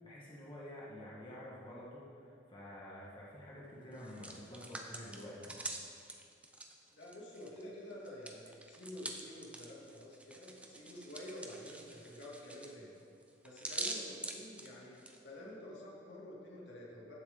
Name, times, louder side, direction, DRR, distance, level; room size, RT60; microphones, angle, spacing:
voice 1, 0.0-5.6, left 1 dB, 25° left, -6 dB, 1.6 m, -49 dB
Hands, 3.9-7.6 7.9-15.2, right 2 dB, 5° right, 0.8 m, -45 dB
voice 2, 6.9-12.9 13.4-17.1, left 1 dB, 70° left, -5 dB, 2.7 m, -49 dB
15.0 x 7.4 x 3.9 m, 2.5 s
head